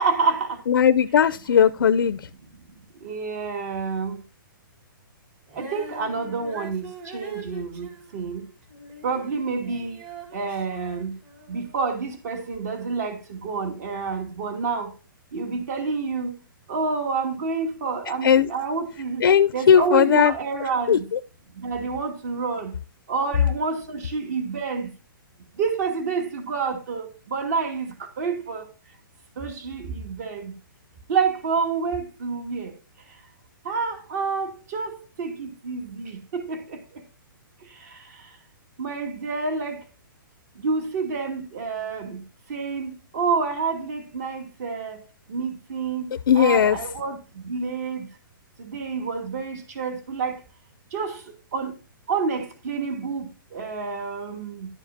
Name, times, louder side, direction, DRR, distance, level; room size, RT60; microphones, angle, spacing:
voice 1, 0.0-0.6 3.0-4.2 5.6-8.4 9.0-10.0 10.3-11.1 11.5-14.9 15.3-16.3 16.7-19.2 19.5-21.0 21.6-22.7 23.1-24.9 25.6-28.6 29.4-30.5 31.1-32.7 33.6-36.8 38.8-39.8 40.6-42.2 42.5-45.0 45.3-46.1 46.3-47.2 47.4-48.0 48.6-50.3 50.9-51.2 51.5-51.7 52.1-54.7, right 4 dB, 45° right, 2.6 m, -28 dB
voice 2, 0.7-2.2 18.2-18.5 19.2-20.3 20.9-21.0 46.3-46.8, left 8 dB, 80° left, 0.6 m, -17 dB
Female singing, 5.5-11.8 12.5-12.6, right 2 dB, 30° right, 1.8 m, -43 dB
11.5 x 7.2 x 2.8 m
hypercardioid pair, 165°, 12 cm